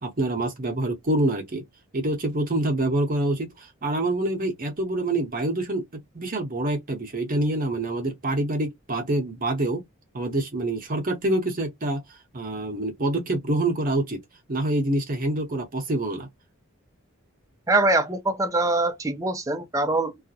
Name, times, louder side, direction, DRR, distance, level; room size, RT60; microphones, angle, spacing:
voice 1, 0.0-1.6 1.9-5.8 6.1-9.8 10.1-12.0 12.3-14.2 14.5-16.3, right 1 dB, 40° right, 0.8 m, -26 dB
voice 2, 17.7-20.2, right 2 dB, 15° right, 0.4 m, -23 dB
2.4 x 2.1 x 2.7 m
head